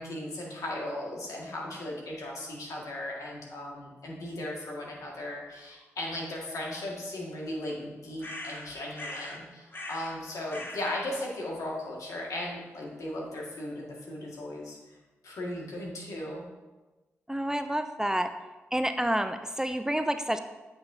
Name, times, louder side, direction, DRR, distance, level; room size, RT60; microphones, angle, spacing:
voice 1, 0.0-14.8 15.2-16.5, left 1 dB, 75° left, -2 dB, 1.8 m, -37 dB
sound 1, 8.2-9.4 9.7-10.2 10.5-11.0, left 1 dB, 40° left, 1.3 m, -40 dB
voice 2, 17.3-18.3 18.7-20.4, right 1 dB, 10° right, 8 dB, 0.4 m, -29 dB
8.6 x 5.9 x 2.7 m, 1.2 s
supercardioid pair, 45°, 6 cm